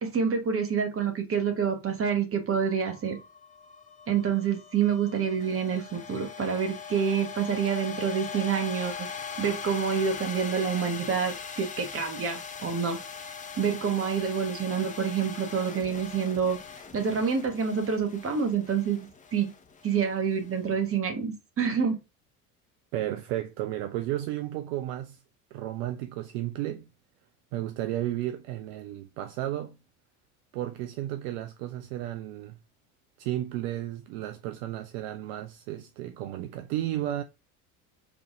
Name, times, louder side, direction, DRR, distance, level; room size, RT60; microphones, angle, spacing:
voice 1, 0.0-3.2 4.1-9.1 9.4-13.0 13.6-16.6 16.9-19.0 19.3-19.5 19.8-22.0, right 6 dB, 30° right, 1.3 m, -27 dB
sound 1, 2.6-20.9, left 6 dB, 15° left, 0.7 m, -41 dB
voice 2, 22.9-25.2 25.5-26.9 27.5-29.8 30.5-32.6 33.2-37.2, right 13 dB, 55° right, 0.6 m, -33 dB
3.5 x 3.5 x 2.5 m
figure-of-eight pair, 65°, 45 cm